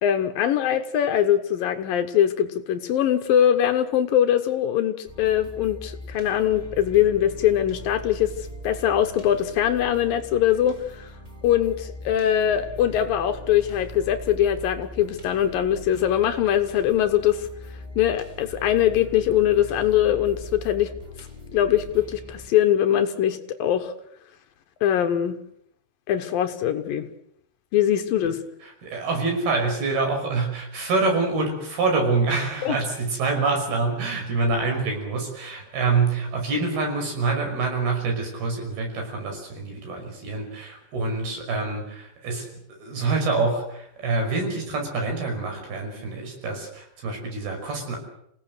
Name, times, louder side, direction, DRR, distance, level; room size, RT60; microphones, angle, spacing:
voice 1, 0.0-8.3 8.6-11.1 11.4-17.5 18.0-20.9 21.5-23.9 24.8-25.4 26.1-27.1 27.7-28.4 32.6-32.8, left 10 dB, 65° left, 8 dB, 2.5 m, -22 dB
sound 1, 5.0-22.5, equal, 10° right, 3.4 m, -41 dB
voice 2, 28.8-48.0, right 3 dB, 60° right, 3 dB, 7.5 m, -26 dB
27.0 x 18.0 x 8.1 m, 0.74 s
omnidirectional pair, 5.1 m